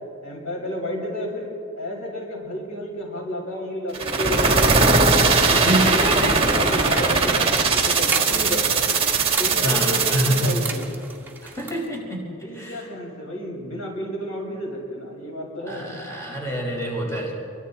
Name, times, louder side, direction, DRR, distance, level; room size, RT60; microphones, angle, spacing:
voice 1, 0.2-1.5 1.8-4.6 5.5-8.7 9.4-10.9 12.4-15.8, equal, 80° left, -1 dB, 5.9 m, -31 dB
sound 1, 3.9-10.8, right 4 dB, 30° right, 2.4 m, -20 dB
voice 2, 5.4-6.4 9.6-10.6 11.4-12.2 12.5-12.9 15.7-17.3, equal, 15° left, -2 dB, 5.2 m, -26 dB
sound 2, 6.8-11.9, right 3 dB, 10° right, 1.9 m, -34 dB
29.5 x 24.0 x 4.2 m, 2.4 s
head